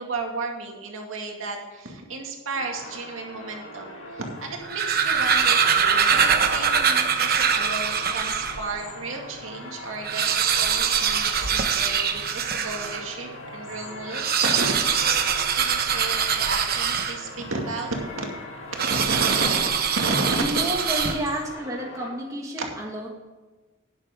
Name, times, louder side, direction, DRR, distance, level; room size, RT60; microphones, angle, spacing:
voice 1, 0.0-14.7 15.0-15.2 15.5-18.3 18.9-19.7 20.0-20.4, right 3 dB, 70° right, 1 dB, 2.3 m, -33 dB
sound 1, 2.5-22.1, left 1 dB, 70° left, 2.2 m, -41 dB
sound 2, 4.5-8.7 9.2-9.3 9.5-9.6 9.9-13.1 14.0-17.5 18.8-21.5, right 7 dB, 45° right, 1.0 m, -23 dB
voice 2, 20.3-23.1, equal, 15° right, -1 dB, 1.7 m, -30 dB
11.5 x 10.5 x 3.7 m, 1.3 s
head